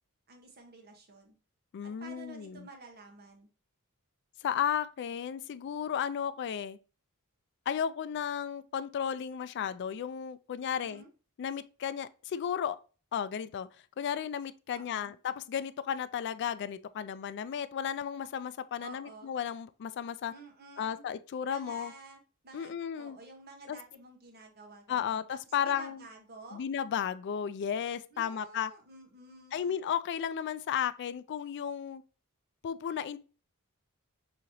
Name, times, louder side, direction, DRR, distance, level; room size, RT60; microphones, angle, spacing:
voice 1, 0.3-1.3 1.8-3.5 10.7-11.1 14.7-15.1 18.8-19.3 20.3-21.0 21.5-26.6 28.1-29.8, right 3 dB, 45° right, 1.0 m, -51 dB
voice 2, 1.7-2.7 4.4-6.8 7.7-11.0 11.4-12.8 13.1-13.7 14.0-20.3 20.8-21.9 22.5-23.2 23.7-23.8 24.9-26.0 26.5-28.7 29.5-32.0 32.6-33.2, left 8 dB, 50° left, 0.3 m, -34 dB
6.2 x 2.9 x 2.6 m
head